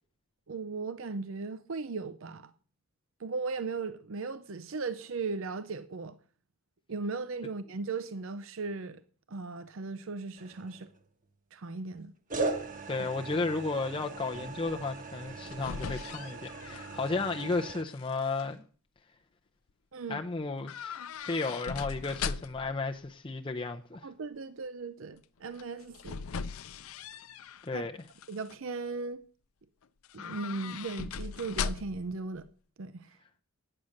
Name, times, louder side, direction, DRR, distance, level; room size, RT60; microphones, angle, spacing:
voice 1, 0.5-2.5 3.2-6.2 6.9-9.0 9.3-10.9 11.5-12.1 13.0-13.1 19.9-20.2 24.0-26.2 27.7-27.9 28.3-29.2 30.1-32.4 32.8-33.2, right 4 dB, 65° right, 0.6 m, -37 dB
sound 1, 10.4-11.0 12.3-17.8, right 3 dB, 40° right, 1.1 m, -39 dB
voice 2, 12.9-18.6 20.1-24.1 27.6-27.9, left 3 dB, 25° left, 0.6 m, -33 dB
sound 2, 15.2-17.6 17.9-18.4 20.6-22.8 25.5-27.7 28.1-28.6 30.0-32.1 32.4-32.5, left 6 dB, 80° left, 0.5 m, -39 dB
9.5 x 8.8 x 6.4 m
head